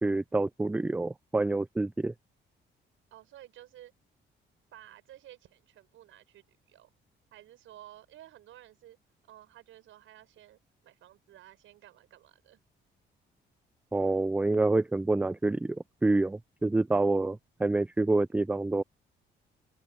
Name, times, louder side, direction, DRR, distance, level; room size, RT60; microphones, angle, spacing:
voice 1, 0.0-2.1 13.9-18.8, right 2 dB, 5° right, 0.3 m, -27 dB
voice 2, 3.1-3.9 4.7-6.9 7.3-9.0 9.2-12.6, right 13 dB, 85° right, 6.2 m, -53 dB
open air
cardioid pair, 90°, 20 cm